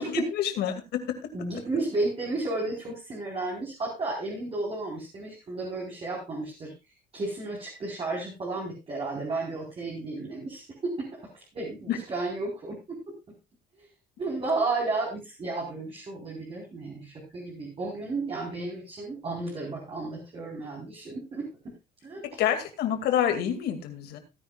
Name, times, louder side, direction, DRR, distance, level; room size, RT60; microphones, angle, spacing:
voice 1, 0.0-1.3 11.9-12.0 22.2-24.2, left 9 dB, 75° left, 6 dB, 2.4 m, -28 dB
voice 2, 1.3-6.7 7.1-11.1 11.5-13.0 14.2-21.5 22.0-22.4, right 3 dB, 35° right, -3 dB, 4.4 m, -33 dB
17.0 x 10.0 x 2.4 m, 0.25 s
cardioid pair, 110°, 17 cm